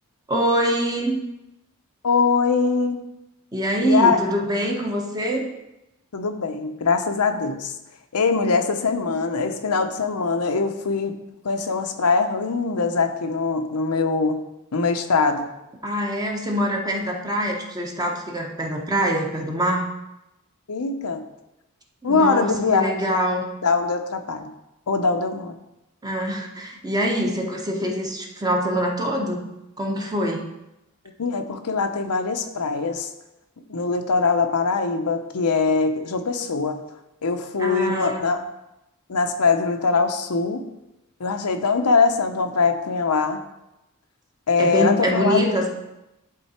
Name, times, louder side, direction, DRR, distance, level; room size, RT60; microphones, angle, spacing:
voice 1, 0.3-1.2 3.5-5.5 15.8-19.9 22.0-23.5 26.0-29.5 29.8-30.5 37.6-38.3 44.6-45.8, equal, 15° right, 0 dB, 1.0 m, -24 dB
voice 2, 2.0-3.0 3.8-4.2 6.1-7.7 8.1-11.1 11.4-14.4 14.7-15.5 20.7-21.2 22.0-23.0 23.6-24.5 24.9-25.5 31.2-33.1 33.7-36.8 37.2-38.4 39.1-40.6 41.2-43.4 44.5-45.4, left 4 dB, 85° left, 6 dB, 0.7 m, -22 dB
11.5 x 3.9 x 4.3 m, 0.94 s
head